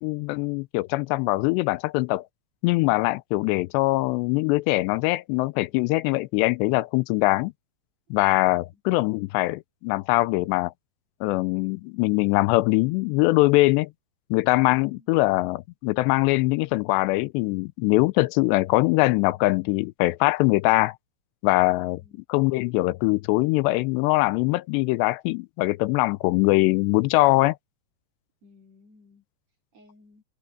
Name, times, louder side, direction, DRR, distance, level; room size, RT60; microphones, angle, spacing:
voice 1, 0.0-2.2 2.6-7.5 8.1-10.7 11.2-13.9 14.3-21.0 21.4-22.0 22.3-27.6, left 21 dB, 85° left, 2.7 m, -22 dB
voice 2, 21.7-22.2 28.4-29.2 29.7-30.2, left 2 dB, 40° right, 3.9 m, -56 dB
omnidirectional pair, 5.0 m